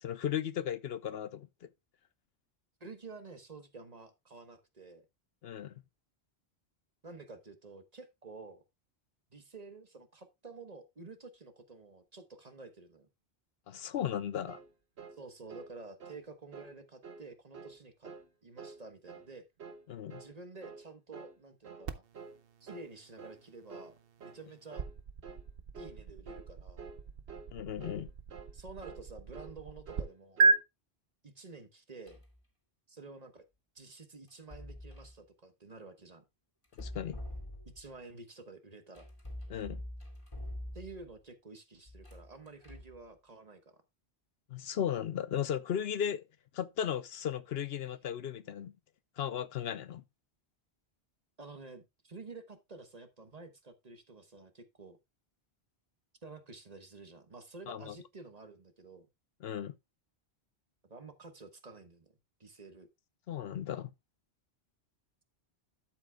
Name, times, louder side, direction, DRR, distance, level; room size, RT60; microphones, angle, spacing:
voice 1, 0.0-1.7 5.4-5.7 13.7-14.6 19.9-20.2 27.5-28.1 36.8-37.2 39.5-39.8 44.5-46.3 46.5-48.7 49.2-50.0 57.7-58.0 59.4-59.7 63.3-63.9, left 9 dB, 75° left, 0.9 m, -36 dB
voice 2, 2.8-5.0 7.0-8.6 9.3-13.1 15.1-18.1 18.4-19.5 20.1-22.0 22.6-23.9 24.2-24.9 25.8-26.8 28.5-30.5 31.2-32.2 32.9-33.4 33.7-36.2 37.7-39.1 40.7-43.8 51.4-55.0 56.2-59.1 60.9-62.1 62.4-62.9, right 3 dB, 40° right, 1.2 m, -50 dB
sound 1, 14.5-14.7 15.0-15.2 15.5-15.7 16.0-16.2 16.5-16.8 17.0-17.3 17.5-17.8 18.0-18.3 18.6-18.8 19.1-19.3 19.6-19.8 20.1-20.3 20.6-20.9 21.1-21.4 21.6-21.9 22.1-22.4 22.7-22.9 23.2-23.4 23.7-23.9 24.2-24.4 24.7-24.9 25.2-25.5 25.7-26.0 26.3-26.5 26.8-27.0 27.3-27.5 27.8-28.0 28.3-28.5 28.8-29.1 29.3-29.6 29.9-30.6, right 5 dB, 80° right, 1.3 m, -49 dB
sound 2, 21.9-30.0 30.4-30.6, right 4 dB, 65° right, 1.0 m, -35 dB
sound 3, 32.1-32.4 34.3-35.2 36.6-38.0 39.0-41.1 41.9-43.0, left 1 dB, 30° left, 2.4 m, -45 dB
12.0 x 7.7 x 2.2 m
omnidirectional pair, 1.1 m